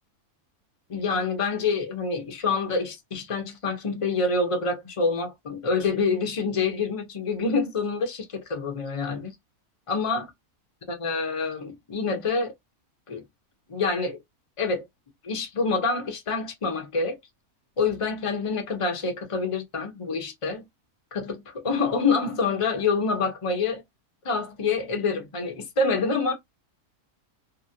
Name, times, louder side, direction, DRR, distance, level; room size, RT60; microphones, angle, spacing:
voice 1, 0.9-9.3 9.9-10.3 10.9-12.5 13.1-13.2 13.7-14.2 14.6-14.9 15.2-17.2 17.8-20.6 21.1-23.8 24.2-26.3, left 4 dB, 30° left, 0.6 m, -27 dB
2.8 x 2.4 x 2.7 m
omnidirectional pair, 1.6 m